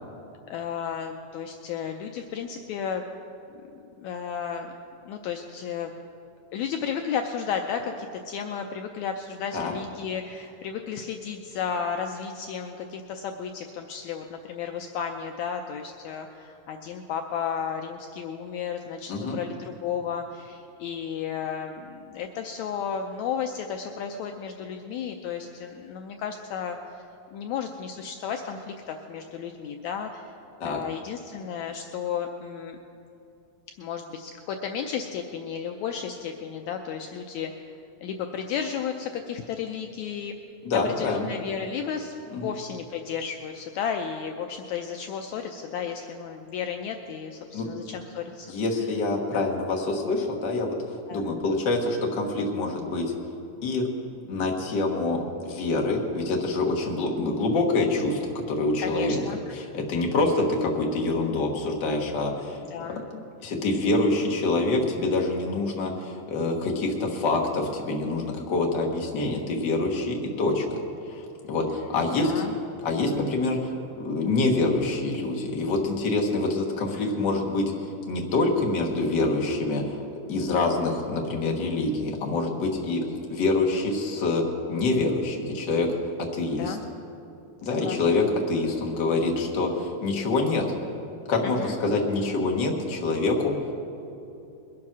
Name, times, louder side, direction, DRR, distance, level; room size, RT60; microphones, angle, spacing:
voice 1, 0.5-3.0 3.5-3.6 4.0-4.7 5.1-5.9 6.5-27.0 27.3-30.3 30.6-32.8 33.8-37.5 38.0-40.4 40.7-48.5 49.3-49.4 51.1-51.2 58.8-59.4 62.7-63.0 71.6-72.6 77.0-77.1 86.5-86.8 87.7-88.2 91.4-91.8, left 7 dB, 85° left, 4 dB, 1.6 m, -33 dB
voice 2, 40.6-41.3 42.3-42.5 47.5-47.6 48.5-50.8 51.1-53.0 53.6-53.9 54.3-58.2 58.5-59.2 59.5-62.6 63.4-70.8 71.1-71.2 71.5-72.4 72.8-73.7 74.0-77.6 78.1-80.0 80.3-83.0 83.3-84.4 84.7-85.9 86.3-86.8 87.6-90.6 91.3-93.6, left 2 dB, 45° left, 0 dB, 1.5 m, -26 dB
21.5 x 7.4 x 6.1 m, 2.8 s
omnidirectional pair, 3.9 m